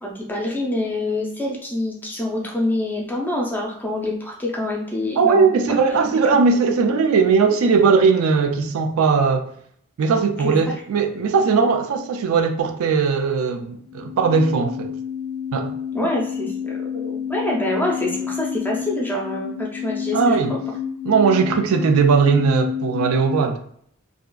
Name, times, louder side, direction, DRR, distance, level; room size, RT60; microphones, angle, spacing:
voice 1, 0.0-5.8 6.0-6.2 10.4-10.6 15.9-20.6, left 1 dB, 10° left, 0.5 m, -26 dB
voice 2, 5.2-9.5 10.0-14.9 15.5-15.7 20.1-20.6 21.0-23.6, right 5 dB, 70° right, 0.4 m, -18 dB
sound 1, 13.8-23.5, left 7 dB, 70° left, 0.4 m, -29 dB
2.6 x 2.4 x 2.2 m
head